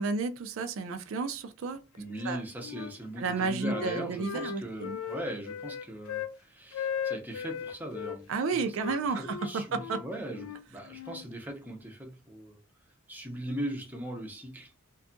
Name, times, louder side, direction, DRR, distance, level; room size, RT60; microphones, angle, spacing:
voice 1, 0.0-1.8 2.2-2.4 3.2-5.0 8.3-10.0, right 4 dB, 75° right, 0.4 m, -32 dB
voice 2, 2.0-8.3 9.1-12.6 13.1-14.7, right 1 dB, 10° right, 0.5 m, -39 dB
Wind instrument woodwind instrument, 2.1-2.9 3.3-6.4 6.7-8.2 8.8-11.3, left 7 dB, 85° left, 0.3 m, -38 dB
2.6 x 2.3 x 2.5 m
head